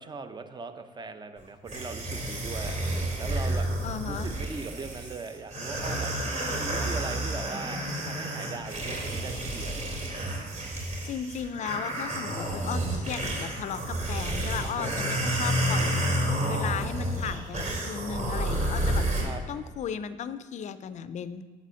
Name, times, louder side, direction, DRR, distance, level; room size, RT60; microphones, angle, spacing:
voice 1, 0.0-3.7 4.1-6.1 6.6-9.8 14.6-15.0 19.2-19.4, right 4 dB, 25° right, 9 dB, 0.6 m, -40 dB
sound 1, 1.7-19.2, right 1 dB, 40° right, 2.6 m, -30 dB
voice 2, 3.8-4.3 10.7-16.1 16.5-19.0 19.5-21.4, left 8 dB, 45° left, 13 dB, 0.4 m, -36 dB
8.1 x 4.1 x 6.2 m, 1.4 s
cardioid pair, 110°, 17 cm